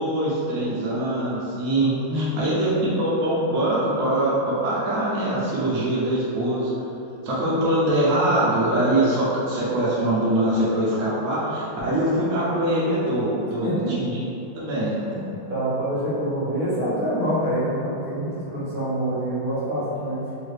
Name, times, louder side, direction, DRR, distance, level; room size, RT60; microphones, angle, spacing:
voice 1, 0.0-4.4 4.6-6.7 7.2-14.2 14.5-15.0, right 1 dB, 75° right, -8 dB, 0.7 m, -23 dB
voice 2, 2.1-2.6 13.6-13.9 15.1-20.2, equal, 50° right, -10 dB, 1.3 m, -26 dB
3.6 x 2.4 x 3.2 m, 2.8 s
omnidirectional pair, 2.3 m